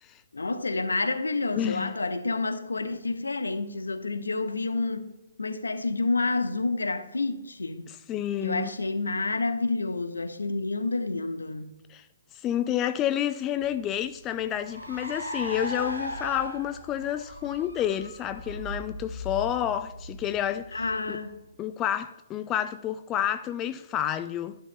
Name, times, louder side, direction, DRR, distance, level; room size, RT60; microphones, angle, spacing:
voice 1, 0.3-5.1 5.4-7.9 8.4-11.7 20.7-21.4, left 3 dB, 70° left, 0.9 m, -29 dB
voice 2, 1.6-2.0 7.9-8.7 11.9-12.1 12.3-21.2 21.6-24.6, left 10 dB, 20° left, 0.3 m, -30 dB
Car, 13.6-21.4, left 1 dB, 85° right, 2.4 m, -38 dB
12.0 x 11.0 x 2.2 m
figure-of-eight pair, 130°, 0 cm